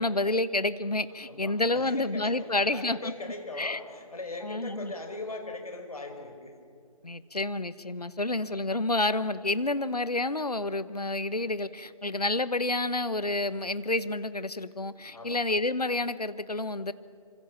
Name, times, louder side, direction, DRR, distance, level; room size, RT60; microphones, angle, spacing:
voice 1, 0.0-3.1 3.5-3.8 4.4-4.9 7.0-16.9, left 2 dB, 85° left, 15 dB, 1.3 m, -29 dB
voice 2, 1.2-6.5 15.1-15.4, left 2 dB, 70° left, 5 dB, 5.0 m, -40 dB
25.5 x 25.5 x 7.4 m, 2.3 s
figure-of-eight pair, 145°, 19 cm